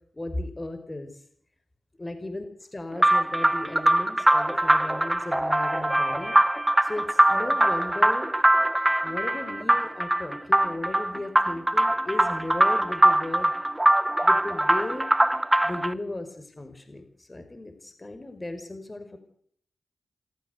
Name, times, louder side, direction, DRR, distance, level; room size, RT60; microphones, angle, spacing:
voice 1, 0.1-1.2 2.0-6.4 6.8-8.3 9.0-13.5 14.2-15.1 15.6-19.2, left 2 dB, 30° left, 8 dB, 5.4 m, -36 dB
sound 1, 3.0-15.9, right 1 dB, 15° right, 1.5 m, -22 dB
27.0 x 14.5 x 8.2 m, 0.63 s
cardioid pair, 45°, 0 cm